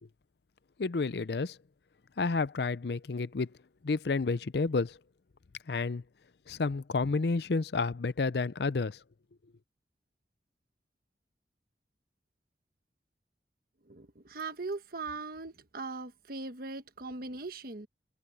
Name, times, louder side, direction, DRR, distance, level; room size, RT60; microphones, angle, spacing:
voice 1, 0.8-1.6 2.2-3.5 3.8-5.0 5.7-6.0 6.5-9.0, left 4 dB, 65° left, 0.5 m, -30 dB
voice 2, 13.9-17.9, right 3 dB, 55° right, 1.3 m, -40 dB
head